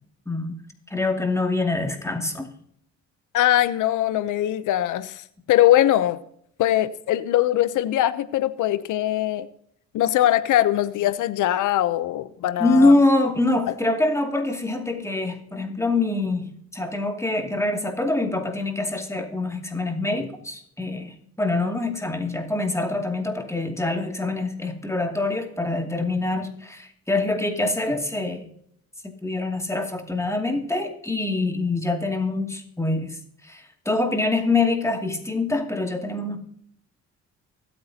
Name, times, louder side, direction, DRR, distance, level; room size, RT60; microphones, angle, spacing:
voice 1, 0.9-2.5 12.6-28.4 29.2-36.4, left 2 dB, 10° left, 2.5 m, -24 dB
voice 2, 3.3-5.2 5.5-6.2 6.6-9.5 9.9-12.9, left 13 dB, 80° left, 0.8 m, -21 dB
24.0 x 8.5 x 2.9 m
cardioid pair, 90°, 30 cm